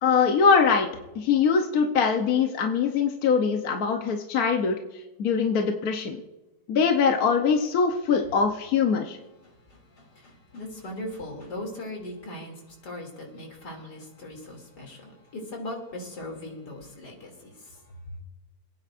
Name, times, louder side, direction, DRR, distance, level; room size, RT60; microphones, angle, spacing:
voice 1, 0.0-0.9 1.1-4.8 5.2-6.2 6.7-9.2, left 6 dB, 65° left, 3 dB, 1.3 m, -22 dB
voice 2, 9.4-17.8, left 1 dB, 80° left, 1 dB, 3.4 m, -39 dB
26.5 x 9.5 x 2.5 m, 1.0 s
omnidirectional pair, 1.8 m